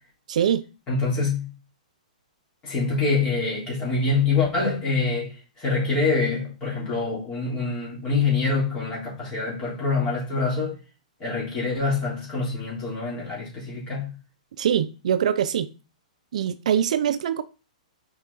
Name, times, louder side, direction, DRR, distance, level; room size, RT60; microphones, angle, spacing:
voice 1, 0.3-0.6 14.6-15.7 16.3-17.4, right 9 dB, 65° right, 0.4 m, -23 dB
voice 2, 0.9-1.5 2.6-10.8 11.2-14.1, left 4 dB, 20° left, 3.4 m, -25 dB
6.0 x 4.7 x 4.0 m
hypercardioid pair, 160°, 4 cm